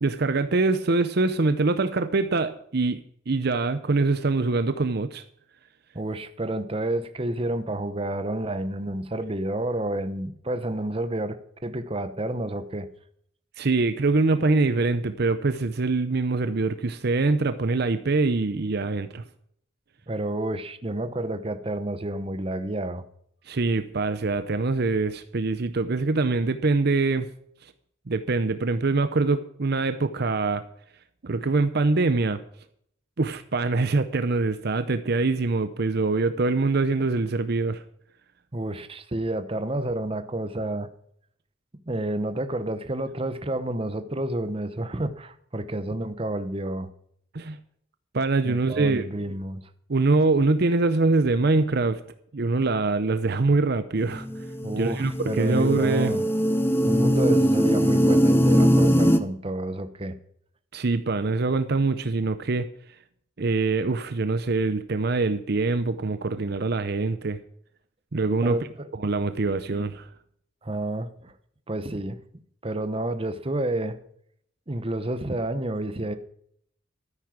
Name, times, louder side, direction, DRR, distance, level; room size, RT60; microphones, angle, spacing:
voice 1, 0.0-3.0 3.3-5.2 13.6-19.2 23.5-27.3 28.1-30.6 31.2-32.4 33.2-37.8 47.3-47.6 48.1-49.0 49.9-52.0 52.3-54.3 54.8-56.1 60.7-62.7 63.4-67.4 68.1-68.6 69.0-70.1, right 3 dB, 55° right, 0.7 m, -24 dB
voice 2, 5.9-12.9 20.1-23.0 38.5-40.9 41.9-46.9 48.4-49.6 54.6-56.3 56.8-60.1 68.4-68.9 70.6-71.3 71.7-72.2 72.6-74.0 74.7-76.1, right 1 dB, 30° right, 0.9 m, -30 dB
sound 1, 54.1-59.2, equal, 10° left, 0.9 m, -21 dB
13.0 x 9.9 x 6.0 m
head